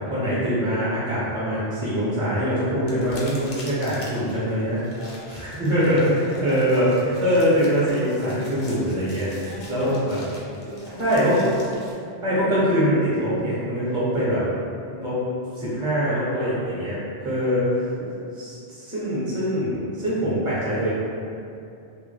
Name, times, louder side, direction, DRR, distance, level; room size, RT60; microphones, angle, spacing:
voice 1, 0.1-4.8 5.3-10.2 11.0-11.5 12.2-14.4 14.9-15.2 15.6-17.0 17.2-17.6 18.4-20.9, equal, 5° right, -9 dB, 0.4 m, -23 dB
sound 1, 2.8-11.9, left 1 dB, 60° left, 0.5 m, -45 dB
voice 2, 5.9-6.7 9.4-10.0 10.6-11.5 16.3-16.5 17.3-18.2, right 1 dB, 60° right, -8 dB, 0.8 m, -39 dB
2.1 x 2.1 x 3.2 m, 2.6 s
omnidirectional pair, 1.2 m